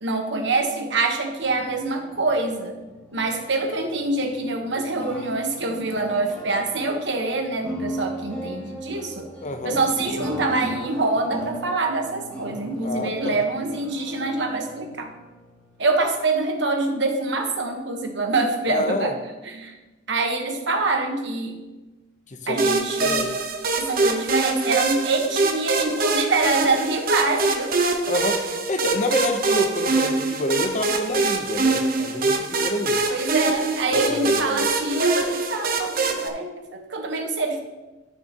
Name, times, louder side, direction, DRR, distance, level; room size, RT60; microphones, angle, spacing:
voice 1, 0.0-2.8 3.1-9.3 9.6-15.1 15.8-19.1 19.4-19.7 20.1-21.6 22.5-23.3 23.7-28.0 33.1-37.6, right 3 dB, 70° right, 4 dB, 1.2 m, -25 dB
sound 1, 1.4-16.1, equal, 10° left, 1.7 m, -37 dB
voice 2, 9.4-9.8 12.8-13.5 18.7-19.1 22.3-23.4 28.1-33.0 33.9-34.7, left 2 dB, 40° left, 7 dB, 0.8 m, -28 dB
sound 2, 22.6-36.3, right 3 dB, 50° right, 0.9 m, -24 dB
13.0 x 6.9 x 2.9 m, 1.1 s
head